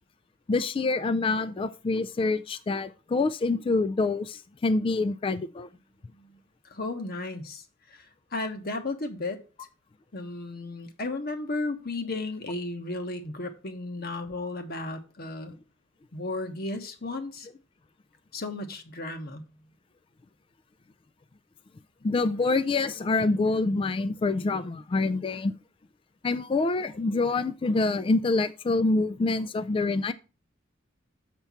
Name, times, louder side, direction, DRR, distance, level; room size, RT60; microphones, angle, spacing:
voice 1, 0.5-5.7 22.0-25.5 26.2-30.1, left 3 dB, 25° left, 0.3 m, -26 dB
voice 2, 6.7-7.6 7.9-8.0 8.3-9.4 10.1-15.5 16.1-17.5 18.3-19.5, left 2 dB, 55° left, 1.1 m, -34 dB
7.1 x 4.4 x 5.6 m
head